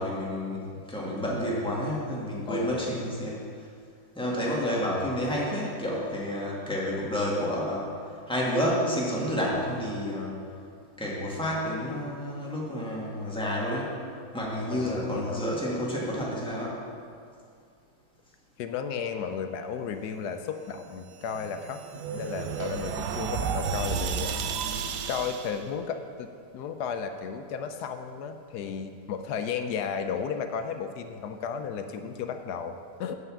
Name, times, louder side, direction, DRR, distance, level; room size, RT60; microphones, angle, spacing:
voice 1, 0.0-3.4 4.1-7.9 8.3-10.4 11.0-13.9 14.3-16.8, equal, 5° left, -5 dB, 1.5 m, -30 dB
voice 2, 2.5-3.1 14.7-15.4 18.6-21.8 22.1-26.3 26.5-33.2, left 6 dB, 75° left, 8 dB, 1.1 m, -34 dB
sound 1, 21.1-25.6, right 6 dB, 80° right, 1.2 m, -32 dB
7.9 x 5.6 x 7.1 m, 2.3 s
omnidirectional pair, 1.8 m